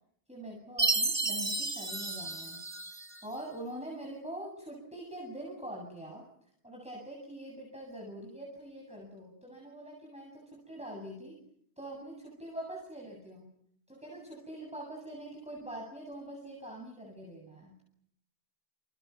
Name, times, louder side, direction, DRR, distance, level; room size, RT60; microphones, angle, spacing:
voice 1, 0.3-2.6 3.2-6.3 6.6-11.4 11.8-13.5 13.9-17.8, right 1 dB, 5° right, -1 dB, 7.8 m, -44 dB
Chime, 0.8-3.2, right 3 dB, 45° right, 2.3 m, -32 dB
30.0 x 29.5 x 6.1 m, 0.69 s
omnidirectional pair, 1.1 m